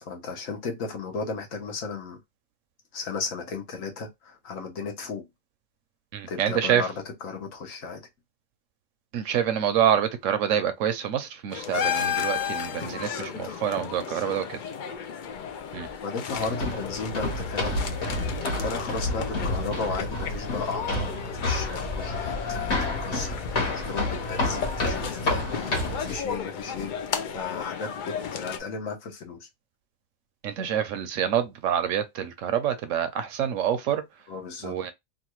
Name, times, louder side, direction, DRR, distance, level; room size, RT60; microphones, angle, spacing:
voice 1, 0.0-2.2 2.9-5.3 6.3-8.0 13.0-13.6 14.0-14.3 16.0-17.8 18.6-22.7 23.0-26.9 27.2-29.5 34.3-34.8, left 4 dB, 70° left, 1.3 m, -35 dB
voice 2, 6.1-6.8 9.1-14.6 15.7-15.9 30.4-34.0 34.6-34.9, right 9 dB, 70° right, 0.9 m, -26 dB
sound 1, 11.5-28.6, left 7 dB, 90° left, 0.4 m, -33 dB
sound 2, 16.3-26.1, left 2 dB, 55° left, 1.5 m, -30 dB
3.1 x 2.4 x 2.9 m
omnidirectional pair, 1.5 m